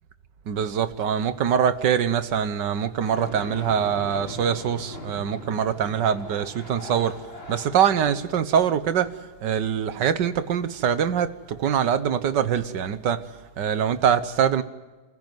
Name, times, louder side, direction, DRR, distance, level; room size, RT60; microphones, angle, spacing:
voice 1, 0.5-7.2 7.5-9.1 9.4-13.2 13.6-14.6, right 8 dB, 85° right, 1.8 m, -23 dB
sound 1, 3.1-8.4, left 1 dB, 35° left, 3.0 m, -40 dB
27.5 x 15.5 x 9.4 m
omnidirectional pair, 1.8 m